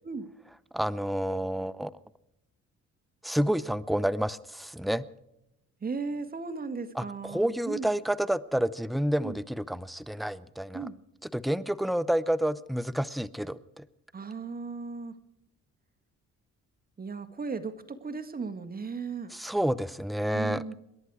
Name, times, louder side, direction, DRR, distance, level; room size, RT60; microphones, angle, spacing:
voice 1, 0.7-1.9 3.2-5.0 7.0-10.9 11.3-13.8 19.3-20.6, right 1 dB, ahead, 16 dB, 0.6 m, -29 dB
voice 2, 5.8-7.9 9.2-9.4 10.7-10.9 14.1-15.2 17.0-19.3 20.3-20.7, right 4 dB, 30° right, 8 dB, 1.7 m, -36 dB
27.0 x 11.0 x 4.8 m, 0.85 s
cardioid pair, 90°, 30 cm